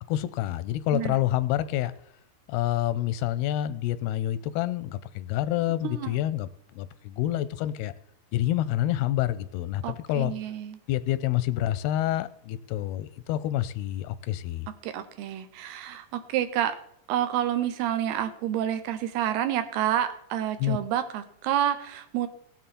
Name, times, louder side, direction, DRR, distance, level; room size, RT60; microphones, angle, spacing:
voice 1, 0.1-1.9 2.5-6.5 6.8-7.9 8.3-10.3 10.9-14.7 20.6-20.8, left 13 dB, 85° left, 14 dB, 2.6 m, -28 dB
voice 2, 9.8-10.8 14.8-16.8 17.1-22.3, right 11 dB, 90° right, 9 dB, 2.9 m, -29 dB
17.0 x 9.1 x 4.3 m, 0.74 s
omnidirectional pair, 4.5 m